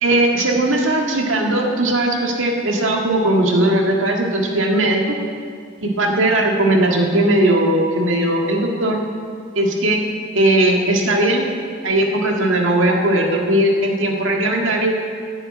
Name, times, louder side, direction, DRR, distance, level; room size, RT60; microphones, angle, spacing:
voice 1, 0.0-5.2 5.8-9.0 9.5-10.0 10.3-11.5 11.8-14.9, right 1 dB, 85° right, 1 dB, 1.7 m, -18 dB
11.5 x 7.0 x 8.8 m, 2.2 s
head